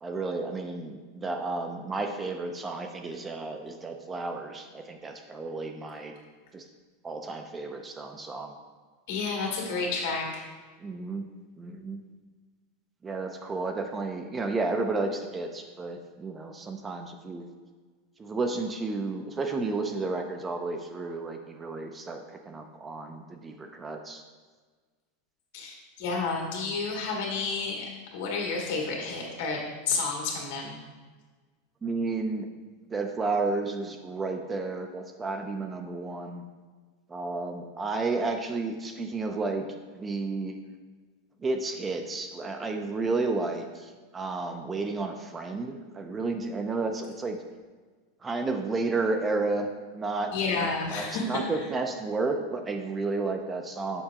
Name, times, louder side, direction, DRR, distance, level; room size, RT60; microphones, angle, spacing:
voice 1, 0.0-6.1 6.5-6.6 7.0-8.6 10.8-11.2 11.6-12.0 13.0-17.5 18.2-24.2 31.8-32.5 32.9-36.4 37.1-40.6 41.4-47.4 48.2-49.7 49.9-54.0, right 3 dB, 15° right, 5 dB, 0.4 m, -32 dB
voice 2, 9.1-10.4 25.5-27.9 28.1-30.8 50.3-51.4, left 4 dB, 70° left, -1 dB, 1.8 m, -30 dB
6.7 x 5.6 x 2.8 m, 1.4 s
supercardioid pair, 160°, 0 cm